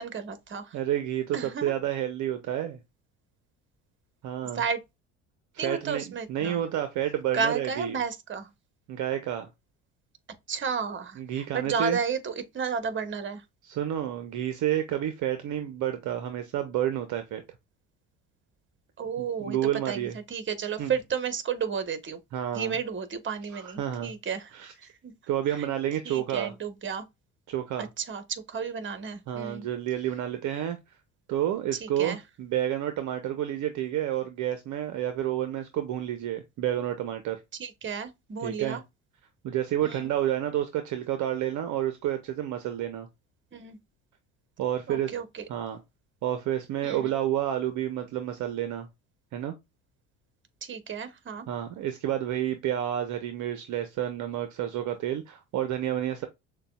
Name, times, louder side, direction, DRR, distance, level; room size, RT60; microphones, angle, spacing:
voice 1, 0.0-0.8 1.3-1.7 4.5-4.8 5.6-6.6 7.3-8.5 10.5-13.4 19.0-19.6 19.8-22.2 22.5-25.1 25.5-25.7 26.0-27.1 27.8-29.7 31.8-32.2 37.6-38.8 39.8-40.1 43.5-43.8 44.9-45.4 46.8-47.1 50.6-51.5, right 6 dB, 30° right, 1.1 m, -32 dB
voice 2, 0.7-2.8 4.2-4.6 5.5-8.0 8.9-9.5 11.2-12.0 13.6-17.4 19.2-20.1 20.8-20.9 22.3-22.8 23.5-24.1 24.5-24.7 25.3-26.5 27.5-27.9 29.3-30.8 31.3-37.4 38.4-38.8 39.4-43.1 44.6-45.1 45.5-45.8 46.2-48.9 49.3-49.6 51.5-56.3, right 11 dB, 55° right, 0.8 m, -30 dB
6.5 x 2.4 x 2.3 m
hypercardioid pair, 65°, 37 cm